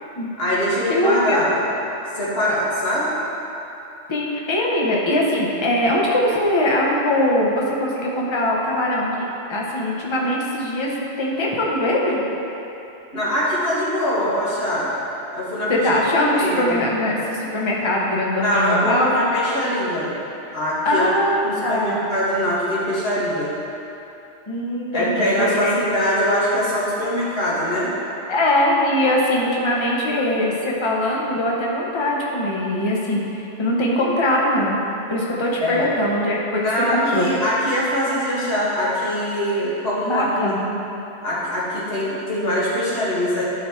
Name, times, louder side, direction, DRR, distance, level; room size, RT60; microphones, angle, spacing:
voice 1, 0.4-1.5 2.1-3.2 13.1-14.9 15.3-15.7 16.1-16.8 18.4-20.1 20.5-21.1 21.4-23.5 24.9-27.9 35.6-35.9 36.5-40.5 41.2-43.4, equal, 60° left, -9 dB, 2.2 m, -22 dB
voice 2, 0.9-1.5 4.1-12.2 15.7-19.1 20.8-22.0 24.5-25.7 28.3-34.8 35.1-36.6 36.9-37.3 40.0-40.8, left 1 dB, 25° left, -3 dB, 0.9 m, -21 dB
11.5 x 4.9 x 3.2 m, 3.0 s
omnidirectional pair, 1.2 m